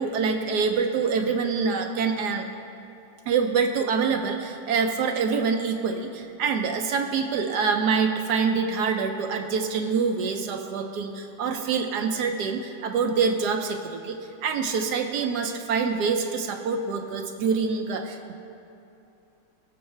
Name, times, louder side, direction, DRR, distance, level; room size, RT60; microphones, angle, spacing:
voice 1, 0.0-2.5 3.3-18.3, right 5 dB, 75° right, 5 dB, 1.1 m, -26 dB
17.0 x 6.8 x 3.3 m, 2.8 s
omnidirectional pair, 1.9 m